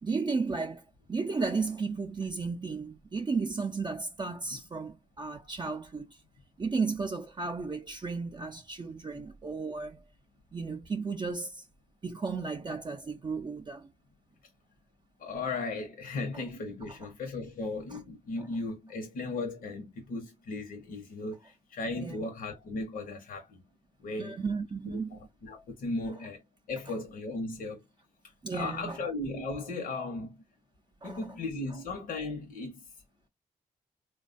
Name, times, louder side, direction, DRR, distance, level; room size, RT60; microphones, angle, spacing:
voice 1, 0.0-6.2 6.6-10.0 10.5-11.7 12.0-13.9 16.8-17.0 17.9-18.0 18.4-18.5 22.0-22.2 24.2-25.2 28.4-29.0 31.0-31.3, right 4 dB, 30° right, 0.5 m, -34 dB
voice 2, 15.2-23.6 24.0-24.4 24.9-26.4 26.7-27.8 28.5-30.4 31.0-32.8, left 3 dB, 75° left, 0.9 m, -36 dB
3.2 x 2.3 x 2.4 m
cardioid pair, 55°, 14 cm